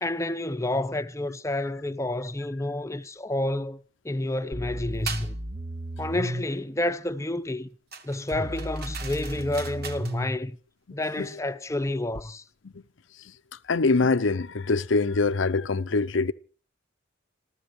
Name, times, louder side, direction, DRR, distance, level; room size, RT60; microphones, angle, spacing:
voice 1, 0.0-5.4 6.0-7.7 8.0-10.6 10.9-12.4, left 1 dB, 15° left, 0.7 m, -29 dB
sound 1, 4.5-6.5 8.3-10.3 12.2-12.3, right 1 dB, 30° right, 0.9 m, -34 dB
sound 2, 5.1-5.3 7.9-10.2, right 6 dB, 50° right, 1.4 m, -39 dB
voice 2, 13.7-16.3, left 3 dB, 70° left, 0.7 m, -24 dB
27.5 x 14.5 x 3.2 m
head